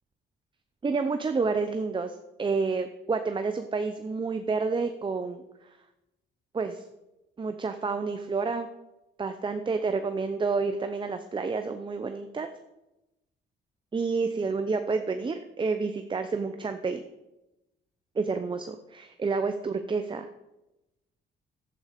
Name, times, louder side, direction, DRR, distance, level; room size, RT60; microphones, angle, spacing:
voice 1, 0.8-5.5 6.5-6.8 7.4-8.7 9.2-12.5 13.9-17.0 18.2-20.3, right 4 dB, 25° right, 8 dB, 0.7 m, -29 dB
11.5 x 8.8 x 5.2 m, 0.96 s
cardioid pair, 90°, 20 cm